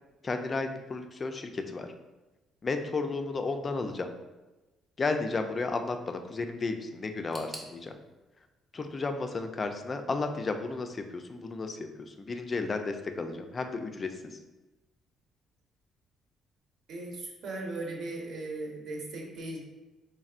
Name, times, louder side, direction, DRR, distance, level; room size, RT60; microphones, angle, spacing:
voice 1, 0.2-1.9 2.6-4.1 5.0-7.9 8.7-14.1, left 3 dB, 30° left, 6 dB, 0.3 m, -33 dB
sound 1, 7.3-10.2 10.4-11.3 11.5-11.6 12.5-12.6, right 1 dB, 5° right, 0.6 m, -51 dB
voice 2, 16.9-19.6, right 2 dB, 60° right, -1 dB, 1.0 m, -38 dB
4.2 x 3.3 x 2.4 m, 1.1 s
cardioid pair, 135°, 0 cm